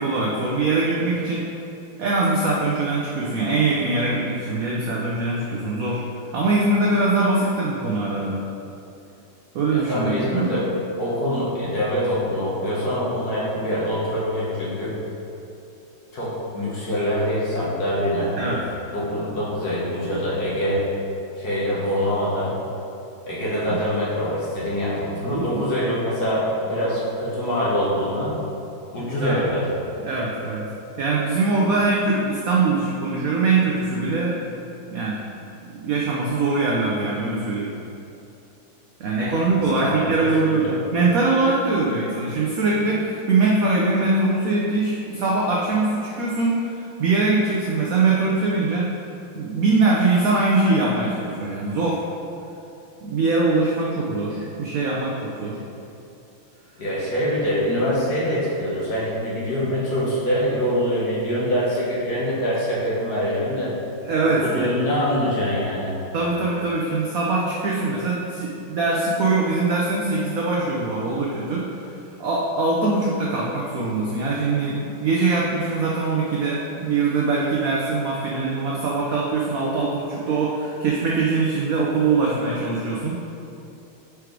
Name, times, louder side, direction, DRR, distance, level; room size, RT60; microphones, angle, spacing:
voice 1, 0.0-1.5 2.0-6.0 6.3-8.4 9.5-10.5 18.4-18.6 25.2-25.6 29.2-29.4 30.0-30.7 31.0-34.4 34.9-35.2 35.7-37.7 39.0-49.0 49.3-52.0 53.0-55.6 64.0-64.7 66.1-71.7 72.2-83.2, right 3 dB, 85° right, -3 dB, 0.7 m, -22 dB
voice 2, 9.7-10.6 11.0-15.0 16.1-18.6 18.9-20.8 21.4-22.5 23.3-28.4 28.9-29.7 39.2-40.7 56.8-63.7 64.2-65.9, equal, 50° left, -7 dB, 1.7 m, -24 dB
5.0 x 4.8 x 4.6 m, 2.8 s
omnidirectional pair, 2.3 m